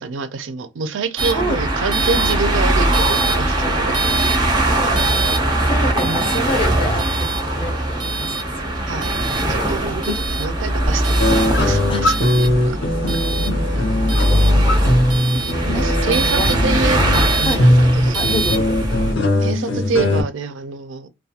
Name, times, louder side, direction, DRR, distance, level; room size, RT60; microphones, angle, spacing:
voice 1, 0.0-4.4 8.9-9.2 9.5-10.1 10.4-13.0 13.8-13.9 14.6-14.7 15.7-18.3 19.4-21.1, right 4 dB, 85° right, 0.4 m, -26 dB
sound 1, 1.2-19.1, right 1 dB, 25° right, 0.5 m, -20 dB
voice 2, 1.3-1.7 3.6-4.6 5.0-8.4 8.6-8.9 9.8-10.2 11.9-12.2 12.6-13.6 14.3-16.5 17.4-17.6 18.1-18.8, left 1 dB, 30° left, 0.4 m, -30 dB
sound 2, 11.2-20.2, left 1 dB, 80° left, 0.7 m, -20 dB
2.3 x 2.2 x 2.7 m
head